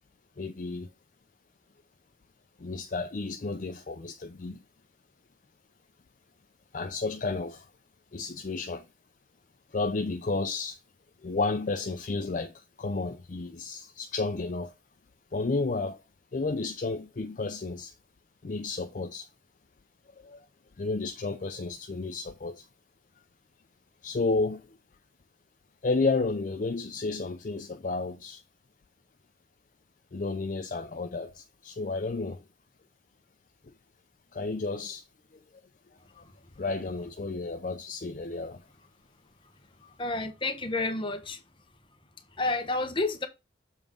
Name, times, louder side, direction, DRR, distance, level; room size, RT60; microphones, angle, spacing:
voice 1, 0.4-0.9 2.6-4.6 6.7-7.7 8.1-8.8 9.7-10.8 11.2-14.7 15.3-16.0 16.3-17.9 18.4-19.3 20.2-20.4 20.8-22.7 24.0-24.7 25.8-28.4 30.1-32.4 34.3-35.0 36.6-38.6, left 3 dB, 45° left, 0.5 m, -32 dB
voice 2, 40.0-41.4 42.4-43.3, left 2 dB, 25° left, 0.9 m, -30 dB
7.2 x 3.6 x 5.0 m
head